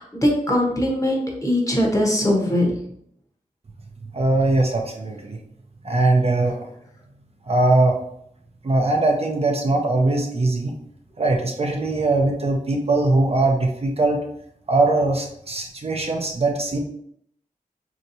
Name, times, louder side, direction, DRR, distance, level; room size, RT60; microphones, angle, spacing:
voice 1, 0.0-2.8, left 1 dB, 25° left, -1 dB, 0.9 m, -21 dB
voice 2, 4.0-5.4 5.8-6.7 7.5-8.0 8.6-10.7 11.2-14.2 14.7-16.8, right 2 dB, 45° right, 2 dB, 0.5 m, -21 dB
4.4 x 2.8 x 2.6 m, 0.71 s
wide cardioid pair, 90°, 14 cm